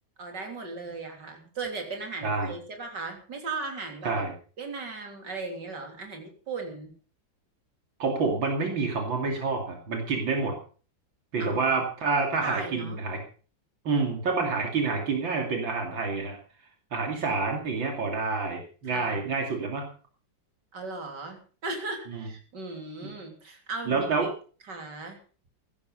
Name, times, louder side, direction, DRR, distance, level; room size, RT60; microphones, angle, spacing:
voice 1, 0.2-4.2 4.6-6.9 11.4-11.8 12.4-13.0 18.9-19.3 20.7-24.3 24.7-25.2, right 3 dB, 60° right, 3 dB, 4.0 m, -37 dB
voice 2, 8.0-10.5 11.3-13.2 13.8-16.4 16.9-19.9 22.1-22.2 23.9-24.3, right 4 dB, 85° right, 2 dB, 3.3 m, -28 dB
16.0 x 13.0 x 5.5 m, 0.40 s
omnidirectional pair, 2.1 m